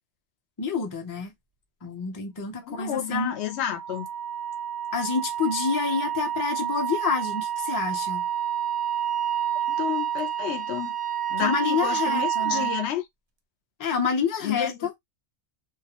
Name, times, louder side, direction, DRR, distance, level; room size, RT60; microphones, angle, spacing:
voice 1, 0.6-1.3 1.8-3.3 4.9-8.3 11.4-12.7 13.8-14.9, left 5 dB, 25° left, 0.4 m, -28 dB
voice 2, 2.7-4.1 9.7-11.0 11.3-13.0 14.4-14.7, left 10 dB, 80° left, 0.8 m, -30 dB
Wind instrument woodwind instrument, 3.4-12.9, right 10 dB, 55° right, 0.6 m, -29 dB
2.3 x 2.1 x 2.8 m
omnidirectional pair, 1.1 m